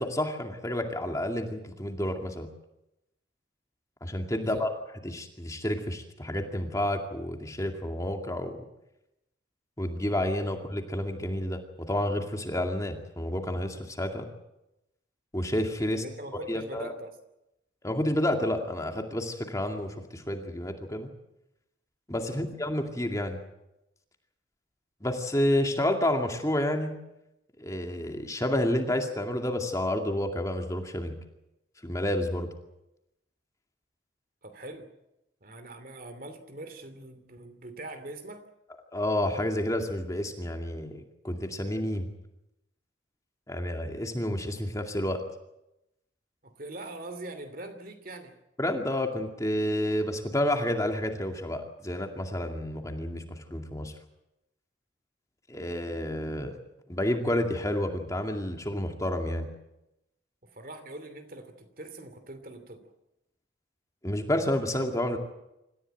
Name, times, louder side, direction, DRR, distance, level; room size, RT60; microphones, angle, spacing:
voice 1, 0.0-2.5 4.0-4.7 5.0-8.7 9.8-14.3 15.3-16.0 16.5-16.9 17.8-21.1 22.1-23.4 25.0-27.0 27.6-31.1 31.8-32.5 38.9-42.1 43.5-45.2 48.6-53.9 55.5-56.6 56.9-59.5 64.0-65.2, left 1 dB, 15° left, 3 dB, 2.3 m, -30 dB
voice 2, 4.3-4.6 15.9-17.2 22.2-22.4 34.4-34.9 35.4-38.4 46.4-48.3 60.4-62.9, right 2 dB, 50° right, 9 dB, 2.8 m, -43 dB
26.5 x 14.5 x 9.0 m, 0.90 s
head